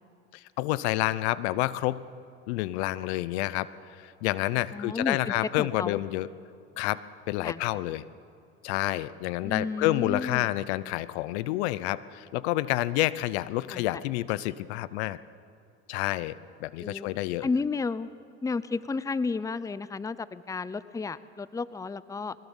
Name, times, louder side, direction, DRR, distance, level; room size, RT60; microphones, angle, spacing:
voice 1, 0.3-2.0 2.5-6.3 6.8-7.0 7.3-8.0 8.6-15.2 15.9-16.4 16.6-17.5, left 16 dB, 70° left, 18 dB, 0.8 m, -29 dB
voice 2, 4.7-6.0 7.4-7.6 9.4-10.5 13.7-14.0 16.8-17.1 17.4-18.1 18.4-22.4, left 4 dB, 10° left, 17 dB, 0.6 m, -32 dB
21.5 x 20.0 x 7.2 m, 2.6 s
hypercardioid pair, 85°, 34 cm